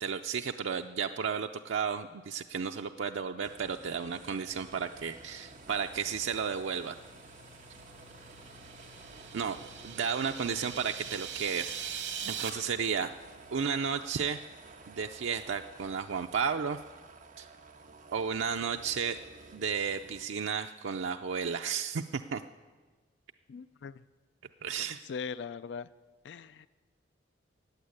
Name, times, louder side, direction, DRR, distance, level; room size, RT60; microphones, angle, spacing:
voice 1, 0.0-7.0 9.3-9.6 9.8-11.8 12.2-13.1 13.5-14.4 14.9-16.8 17.4-17.5 18.1-19.2 19.5-22.4 24.6-25.0, right 6 dB, 90° right, 5 dB, 0.5 m, -33 dB
sound 1, 3.4-20.3, right 3 dB, 45° right, 1.4 m, -52 dB
sound 2, 3.6-15.4, left 2 dB, 30° left, 2.1 m, -59 dB
sound 3, 8.3-12.5, right 8 dB, 70° right, 2.1 m, -41 dB
voice 2, 10.2-10.6 23.5-24.0 25.0-25.9 26.2-26.7, left 5 dB, 65° left, 16 dB, 0.4 m, -41 dB
15.0 x 8.7 x 9.6 m, 1.4 s
head